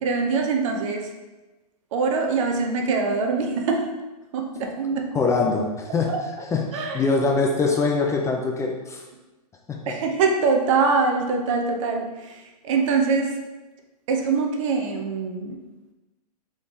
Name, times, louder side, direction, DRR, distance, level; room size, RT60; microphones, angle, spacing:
voice 1, 0.0-1.0 1.9-3.9 4.3-5.0 6.1-6.2 6.7-7.0 9.9-12.1 12.6-13.3 14.1-15.6, right 4 dB, 50° right, 3 dB, 0.8 m, -23 dB
voice 2, 5.1-9.0 9.7-10.0, left 4 dB, 15° left, 1 dB, 0.4 m, -24 dB
3.8 x 3.7 x 3.7 m, 1.1 s
hypercardioid pair, 110°, 20 cm